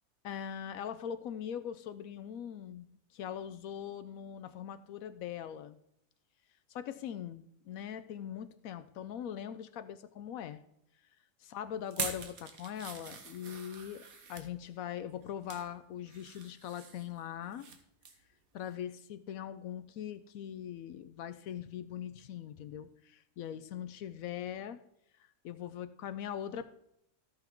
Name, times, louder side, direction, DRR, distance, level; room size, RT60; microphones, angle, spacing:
voice 1, 0.2-5.8 6.7-10.6 11.4-17.7 18.5-24.8 25.2-26.6, left 9 dB, 80° left, 12 dB, 1.0 m, -41 dB
sound 1, 11.9-14.5 15.1-15.7 16.1-17.8 18.0-18.3 18.7-18.8, right 5 dB, 80° right, 1.7 m, -43 dB
14.0 x 5.8 x 4.5 m, 0.76 s
omnidirectional pair, 1.5 m